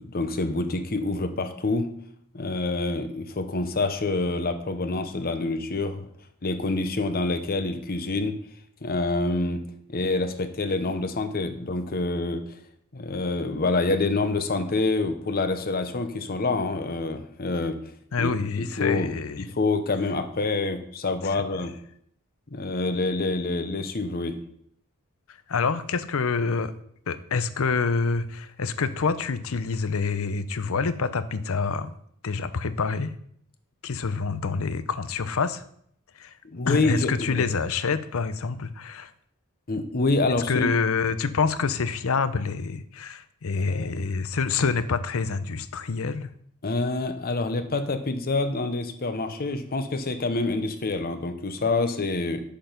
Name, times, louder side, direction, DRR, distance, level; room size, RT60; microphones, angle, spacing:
voice 1, 0.0-1.9 2.3-6.1 6.4-8.4 8.8-9.6 9.9-12.6 12.9-17.8 18.2-19.1 19.4-21.7 22.5-24.4 36.4-37.5 39.7-40.7 43.6-44.0 46.6-52.4, left 3 dB, 45° left, 8 dB, 0.9 m, -27 dB
voice 2, 18.1-19.5 21.2-21.4 25.3-26.7 27.1-32.0 32.2-33.1 33.8-35.6 36.2-36.3 36.7-39.1 40.5-46.3, left 5 dB, 65° left, 13 dB, 0.6 m, -27 dB
7.8 x 6.8 x 5.1 m, 0.67 s
head